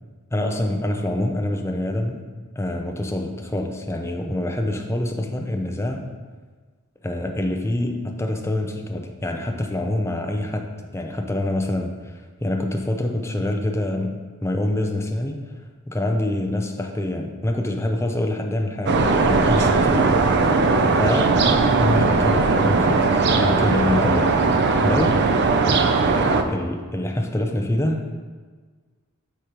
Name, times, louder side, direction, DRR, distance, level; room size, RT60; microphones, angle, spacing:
voice 1, 0.3-2.3 2.6-6.1 7.0-10.7 10.9-14.2 14.4-15.5 15.9-20.6 20.9-21.5 21.8-24.4 24.8-25.3 26.1-28.1, left 1 dB, 10° left, 3 dB, 0.5 m, -25 dB
sound 1, 18.9-26.4, right 3 dB, 50° right, 0.5 m, -19 dB
8.1 x 5.1 x 3.0 m, 1.5 s
head